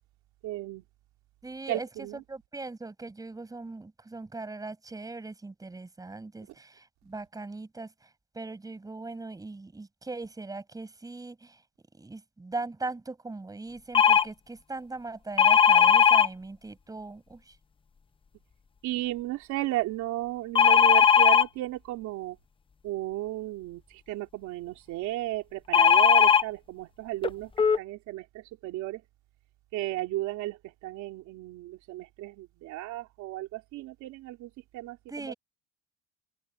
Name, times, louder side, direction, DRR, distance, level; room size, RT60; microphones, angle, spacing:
voice 1, 0.4-0.9 1.7-2.2 18.8-22.4 22.8-29.0 29.7-35.3, right 17 dB, 65° right, 3.4 m, -34 dB
voice 2, 1.4-11.6 11.9-17.6 35.1-35.3, right 3 dB, 10° right, 7.5 m, -40 dB
sound 1, 13.9-14.2 15.4-16.3 20.6-21.4 25.7-26.4 27.2-27.3 27.6-27.8, left 7 dB, 15° left, 0.8 m, -18 dB
cardioid pair, 145°, 31 cm